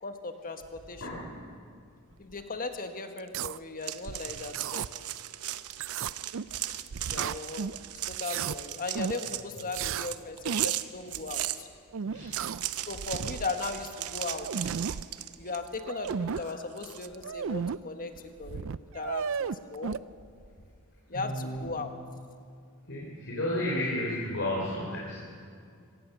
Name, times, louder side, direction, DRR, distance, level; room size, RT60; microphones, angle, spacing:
voice 1, 0.0-1.2 2.2-5.0 7.1-7.8 8.0-11.7 12.9-14.7 15.4-20.0 21.1-21.9, left 3 dB, 40° left, 7 dB, 1.6 m, -37 dB
voice 2, 1.0-1.4 4.3-4.4 9.5-9.7 12.0-12.5 21.1-21.7 22.8-25.4, left 1 dB, 55° left, -4 dB, 3.8 m, -33 dB
sound 1, 3.2-3.6 4.1-4.9 5.7-6.6 6.9-8.6 8.9-9.2 9.7-10.1 10.4-10.8 11.9-12.6 13.0-13.6 14.0-14.1 14.3-15.0 15.7-16.4 17.1-17.8 18.2-18.3 18.4-20.0, right 6 dB, 60° right, 0.4 m, -34 dB
sound 2, 3.8-11.6 12.1-15.7 16.0-17.1, right 13 dB, 85° right, 0.8 m, -37 dB
24.5 x 17.5 x 6.9 m, 2.3 s
head